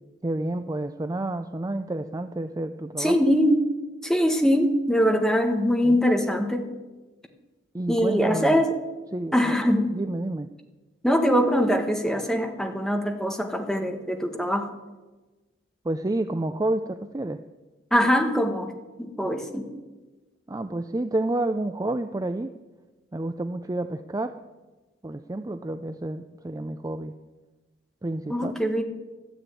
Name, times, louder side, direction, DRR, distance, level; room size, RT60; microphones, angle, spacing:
voice 1, 0.2-3.2 5.8-6.1 7.7-8.6 9.1-9.6 9.9-10.5 15.8-17.4 20.5-22.5 23.1-24.4 25.0-27.1 28.0-28.5, right 2 dB, 20° right, 9 dB, 0.4 m, -29 dB
voice 2, 3.0-3.7 4.0-6.7 7.9-8.8 9.3-9.9 11.0-14.7 17.9-18.7 19.0-19.7 28.3-28.8, equal, 5° left, 4 dB, 1.4 m, -22 dB
13.0 x 9.9 x 9.0 m, 1.2 s
head